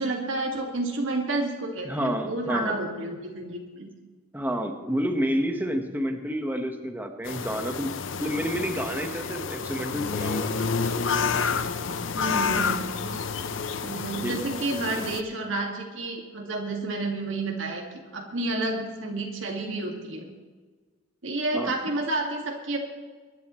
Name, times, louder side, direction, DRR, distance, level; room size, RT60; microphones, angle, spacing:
voice 1, 0.0-3.9 5.7-5.8 12.1-13.2 13.8-17.8 18.1-20.3 21.2-22.8, right 2 dB, 70° right, 1 dB, 2.0 m, -30 dB
voice 2, 1.8-2.8 4.3-10.5 14.2-14.3 21.5-21.7, equal, 10° right, 4 dB, 1.3 m, -29 dB
sound 1, 7.3-15.2, left 5 dB, 70° left, 0.7 m, -29 dB
23.5 x 11.0 x 3.1 m, 1.4 s
head